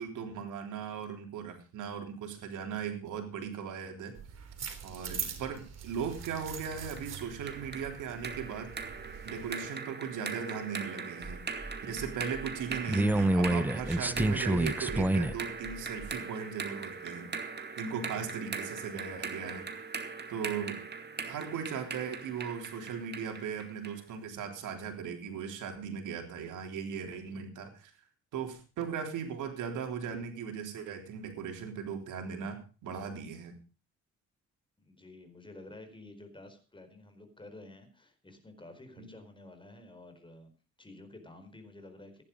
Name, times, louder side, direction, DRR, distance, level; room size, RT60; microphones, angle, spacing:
voice 1, 0.0-4.2 4.8-8.8 9.2-17.3 17.8-19.7 20.3-20.9 21.2-27.9 28.3-33.6 39.0-39.1, right 7 dB, 85° right, 5 dB, 3.5 m, -38 dB
sound 1, 4.2-9.6, right 7 dB, 60° right, 3.5 m, -43 dB
sound 2, 6.2-24.0, right 5 dB, 35° right, 2.2 m, -41 dB
sound 3, 11.2-15.4 15.7-16.2, right 1 dB, 5° right, 0.8 m, -29 dB
voice 2, 34.8-40.5 40.8-42.2, left 2 dB, 15° left, 7 dB, 4.5 m, -51 dB
15.0 x 11.0 x 5.3 m, 0.35 s
cardioid pair, 90°, 30 cm